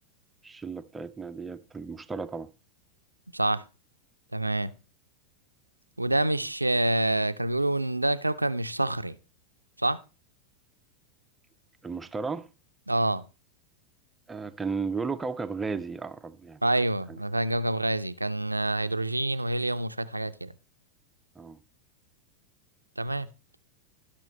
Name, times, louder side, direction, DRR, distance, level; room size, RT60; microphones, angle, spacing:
voice 1, 0.4-2.5 11.8-12.5 14.3-16.6 17.1-17.2 21.4-21.6, right 4 dB, 10° right, 0.4 m, -34 dB
voice 2, 4.3-4.7 6.0-9.1 9.8-10.0 12.9-13.2 16.6-20.5 23.0-23.3, right 1 dB, 85° right, 0.4 m, -27 dB
15.5 x 6.2 x 3.1 m
figure-of-eight pair, 90°, 0 cm